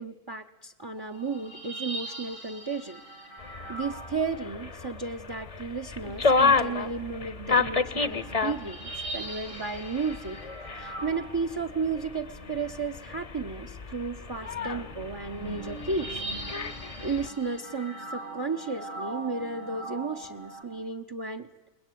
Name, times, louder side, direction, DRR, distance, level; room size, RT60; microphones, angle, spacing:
voice 1, 0.0-3.0 3.7-10.4 10.7-16.2 16.8-21.5, right 4 dB, 20° right, 10 dB, 0.8 m, -33 dB
sound 1, 1.0-4.9 7.2-20.6, right 2 dB, 80° right, 6.2 m, -41 dB
sound 2, 3.4-17.3, left 4 dB, 30° left, 0.9 m, -31 dB
27.5 x 21.0 x 9.3 m, 1.1 s
omnidirectional pair, 1.3 m